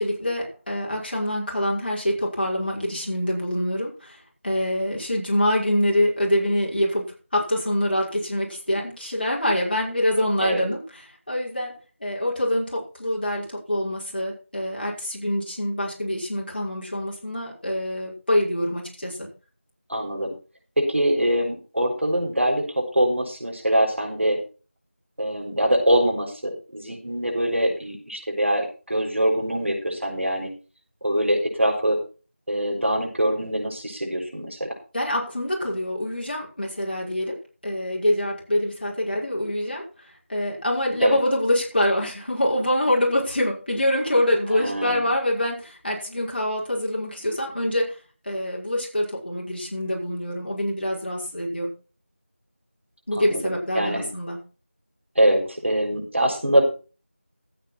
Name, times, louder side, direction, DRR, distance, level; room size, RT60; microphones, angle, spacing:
voice 1, 0.0-4.2 4.4-7.0 7.3-11.7 12.0-19.3 34.9-37.4 37.6-39.8 40.3-48.0 48.3-51.7 53.1-54.4, left 1 dB, 45° left, -3 dB, 5.7 m, -25 dB
voice 2, 19.9-20.3 20.8-24.4 25.2-30.5 31.0-32.0 32.5-34.7 41.0-41.2 44.5-45.1 53.2-54.1 55.2-56.6, right 1 dB, 65° right, 1 dB, 6.1 m, -23 dB
14.5 x 8.8 x 4.5 m, 0.35 s
figure-of-eight pair, 175°, 7 cm